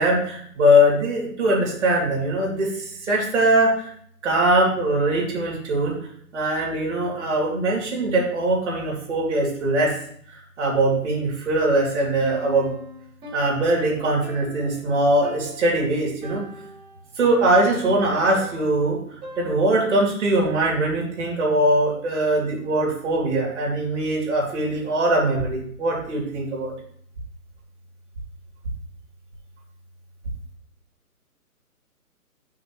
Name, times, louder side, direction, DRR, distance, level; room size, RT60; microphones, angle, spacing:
voice 1, 0.0-3.9 4.2-6.0 6.3-9.9 10.3-12.7 13.3-16.4 17.2-19.0 19.4-26.7, right 1 dB, 50° right, -3 dB, 3.2 m, -21 dB
Piano, 12.2-20.1, equal, 10° right, 1.7 m, -42 dB
10.5 x 6.0 x 3.1 m, 0.63 s
hypercardioid pair, 155°, 45 cm